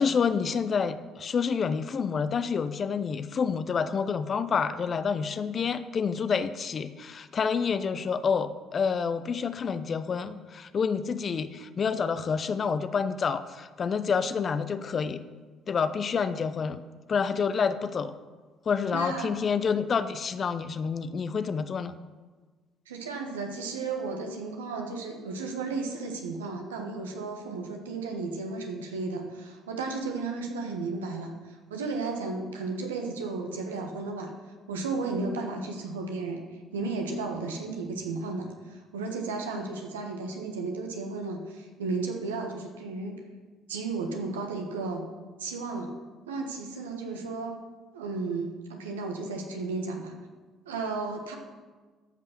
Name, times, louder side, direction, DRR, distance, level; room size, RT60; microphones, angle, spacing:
voice 1, 0.0-15.2 15.7-16.8 17.1-18.1 18.7-21.9, left 6 dB, 45° left, 12 dB, 0.7 m, -28 dB
voice 2, 18.9-19.3 22.9-34.3 34.7-36.4 36.7-43.2 43.7-45.0 45.4-45.9 46.3-47.6 47.9-50.1 50.6-51.4, right 3 dB, 85° right, 3 dB, 1.3 m, -34 dB
14.0 x 5.5 x 6.0 m, 1.4 s
hypercardioid pair, 50°, 0 cm